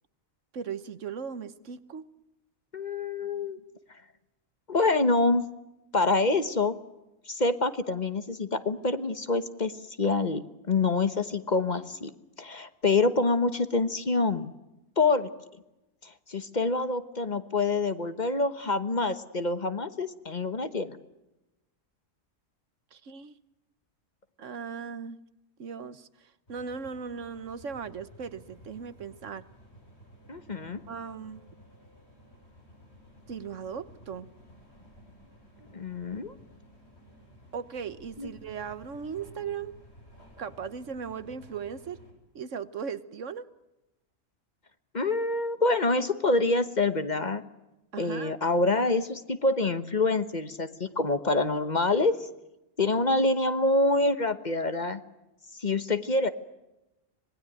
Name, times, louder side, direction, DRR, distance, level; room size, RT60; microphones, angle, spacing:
voice 1, 0.5-2.1 22.9-23.4 24.4-25.2 25.6-29.5 30.9-31.4 33.3-34.3 37.5-39.7 40.4-42.0 42.3-43.5 47.9-48.3, right 6 dB, 70° right, 14 dB, 1.4 m, -38 dB
voice 2, 2.7-3.6 4.7-5.4 5.9-6.7 7.3-9.7 10.0-12.1 12.4-14.5 15.0-15.3 16.0-21.0 30.3-30.8 35.7-36.3 38.2-38.3 44.9-47.4 48.0-52.1 52.8-55.0 55.5-56.3, left 3 dB, 35° left, 11 dB, 1.2 m, -26 dB
sound 1, 26.5-42.1, equal, 55° left, 6.7 m, -54 dB
26.0 x 20.0 x 9.0 m, 0.96 s
omnidirectional pair, 1.3 m